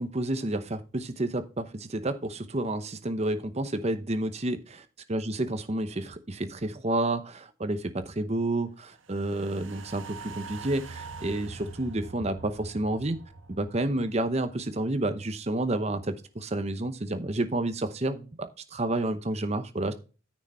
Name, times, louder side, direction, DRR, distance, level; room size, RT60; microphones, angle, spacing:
voice 1, 0.0-4.6 5.1-13.2 13.5-19.9, right 1 dB, 35° right, 10 dB, 0.8 m, -30 dB
sound 1, 9.0-15.4 15.8-15.9, right 4 dB, 80° right, 1.4 m, -44 dB
10.0 x 6.3 x 4.3 m, 0.34 s
head